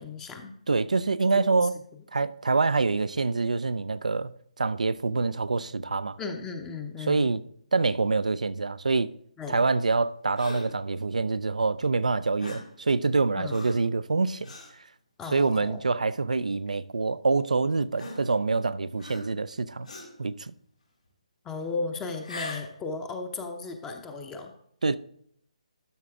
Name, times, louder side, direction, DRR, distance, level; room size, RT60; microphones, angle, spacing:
voice 1, 0.0-0.5 1.6-1.7 6.2-7.3 9.4-9.7 13.4-13.6 15.2-15.8 21.4-24.5, left 4 dB, 10° left, 0.8 m, -35 dB
voice 2, 0.7-1.7 2.1-6.2 7.0-7.4 7.7-9.1 9.5-14.5 15.3-19.9 20.2-20.5 24.8-25.0, right 3 dB, 75° right, 0.5 m, -26 dB
Gasp, 10.4-10.8 12.4-12.8 13.5-13.9 14.4-14.7 15.4-15.6 16.7-16.8 18.0-18.6 19.0-19.5 19.8-20.2 22.1-22.7, left 2 dB, 75° left, 4.1 m, -41 dB
12.5 x 5.6 x 3.6 m
figure-of-eight pair, 145°, 4 cm